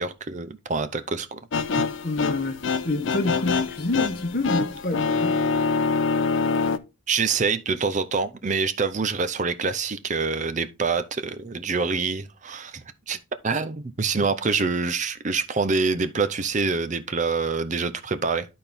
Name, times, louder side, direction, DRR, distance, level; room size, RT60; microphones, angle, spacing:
voice 1, 0.0-1.4 7.1-13.2 13.4-18.5, right 4 dB, 35° right, 0.6 m, -26 dB
sound 1, 1.5-6.8, left 4 dB, 65° left, 0.6 m, -25 dB
voice 2, 2.0-5.4, left 2 dB, 45° left, 1.0 m, -27 dB
12.0 x 4.3 x 3.5 m
head